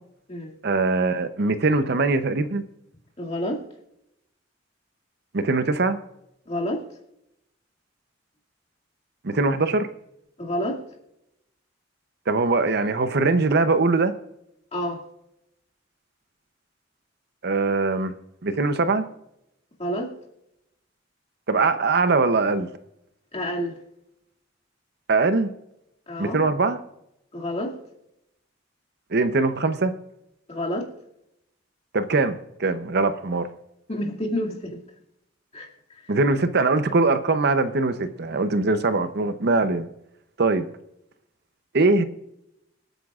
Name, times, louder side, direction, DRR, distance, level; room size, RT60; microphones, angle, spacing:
voice 1, 0.6-2.6 5.3-6.0 9.2-9.9 12.3-14.1 17.4-18.1 18.4-19.1 21.5-22.7 25.1-25.5 26.2-26.8 29.1-29.9 31.9-33.5 36.1-39.9 40.4-40.7 41.7-42.0, right 3 dB, 55° right, 10 dB, 0.7 m, -22 dB
voice 2, 3.2-3.6 6.5-6.8 10.4-10.8 14.7-15.0 19.8-20.1 23.3-23.8 26.1-26.4 27.3-27.7 30.5-30.9 33.9-34.8 35.5-36.0, equal, 35° left, -1 dB, 2.3 m, -29 dB
25.5 x 9.1 x 2.4 m, 0.82 s
head